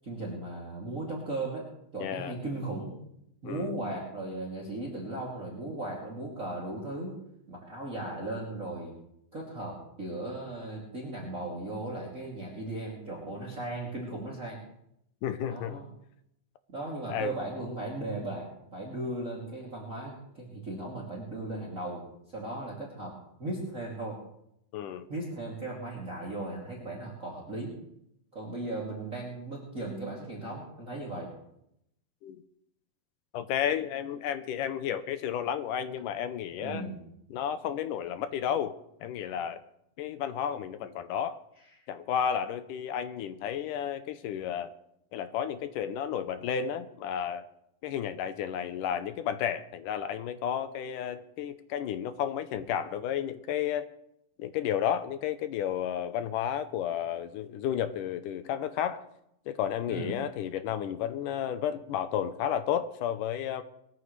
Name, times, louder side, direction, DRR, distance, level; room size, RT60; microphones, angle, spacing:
voice 1, 0.0-1.7 1.9-3.0 3.4-7.1 7.5-8.9 9.3-14.6 15.5-15.9 16.7-23.1 23.4-24.2 25.1-27.7 28.3-31.3 36.6-37.0 59.9-60.2, right 2 dB, 25° right, -3 dB, 2.8 m, -37 dB
voice 2, 2.0-2.4 3.5-3.8 15.2-15.8 17.1-17.4 24.7-25.1 32.2-32.4 33.3-36.9 37.3-38.7 39.0-39.6 40.0-41.4 41.9-44.7 45.1-47.5 47.8-53.9 54.4-59.0 59.5-63.6, left 9 dB, 75° left, 10 dB, 2.2 m, -32 dB
21.5 x 14.0 x 3.3 m, 0.77 s
omnidirectional pair, 4.1 m